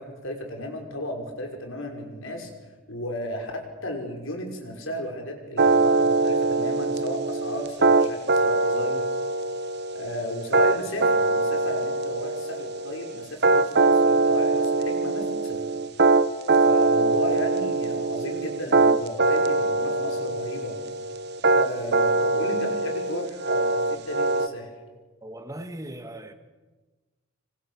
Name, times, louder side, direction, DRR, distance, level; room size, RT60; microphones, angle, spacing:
voice 1, 0.0-2.5 2.9-9.1 9.9-15.6 16.6-20.8 21.5-24.7, left 1 dB, 65° left, 5.6 m, -34 dB
sound 1, 5.6-24.5, right 3 dB, 50° right, 1.0 m, -23 dB
voice 2, 25.2-26.3, right 1 dB, 15° right, 1.7 m, -38 dB
27.0 x 25.0 x 7.2 m
head